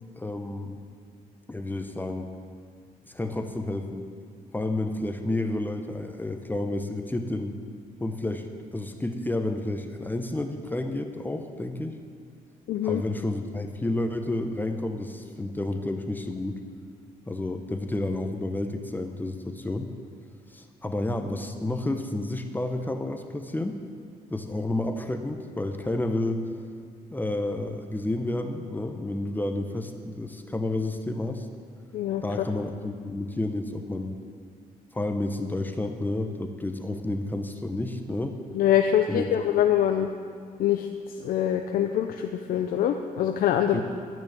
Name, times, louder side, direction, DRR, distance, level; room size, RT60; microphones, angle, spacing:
voice 1, 0.2-0.8 1.5-2.3 3.1-4.1 4.5-7.6 8.0-12.0 12.8-16.6 17.3-19.9 20.5-23.8 24.3-26.5 27.1-31.5 32.2-34.2 34.9-38.4 39.1-39.3 43.7-43.8, left 2 dB, 10° left, 6 dB, 0.9 m, -30 dB
voice 2, 12.7-13.0 31.9-32.2 38.5-40.1 40.6-40.9 41.2-43.8, left 10 dB, 75° left, 5 dB, 0.7 m, -24 dB
13.0 x 6.3 x 8.8 m, 2.2 s
cardioid pair, 100°, 15 cm